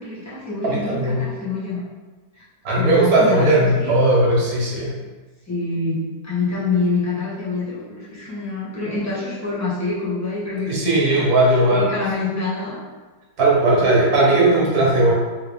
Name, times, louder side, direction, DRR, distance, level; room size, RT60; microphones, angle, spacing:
voice 1, 0.0-1.8 2.3-2.4 2.8-3.9 5.5-11.3 11.7-12.8 13.7-13.8 14.3-15.0, left 3 dB, 10° left, -8 dB, 0.9 m, -26 dB
voice 2, 0.6-1.2 2.6-4.9 10.7-11.9 13.4-15.1, right 2 dB, 60° right, -5 dB, 1.6 m, -17 dB
3.7 x 3.2 x 3.5 m, 1.3 s
omnidirectional pair, 1.8 m